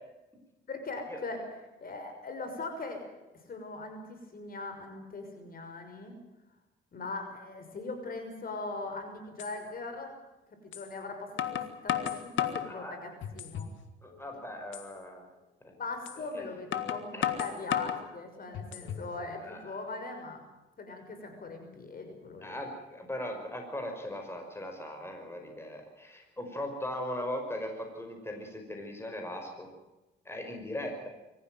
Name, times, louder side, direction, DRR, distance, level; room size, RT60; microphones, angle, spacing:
voice 1, 0.7-1.4 1.8-3.0 3.5-6.2 6.9-10.1 10.7-13.7 15.8-20.4 20.8-22.6, left 3 dB, 45° left, 6 dB, 6.0 m, -40 dB
sound 1, 8.8-8.9 9.4-9.5 10.7-10.9 11.4-12.7 13.2-13.8 14.1-14.2 14.7-14.9 16.1-16.2 16.7-18.0 18.5-19.1, left 10 dB, 75° left, 1.9 m, -33 dB
voice 2, 12.6-13.0 14.0-15.2 15.6-15.7 16.3-16.4 17.1-17.3 18.8-19.6 22.4-29.7 30.3-31.1, left 1 dB, 10° left, 3 dB, 5.6 m, -39 dB
24.5 x 15.0 x 9.2 m, 1.0 s
cardioid pair, 90°, 20 cm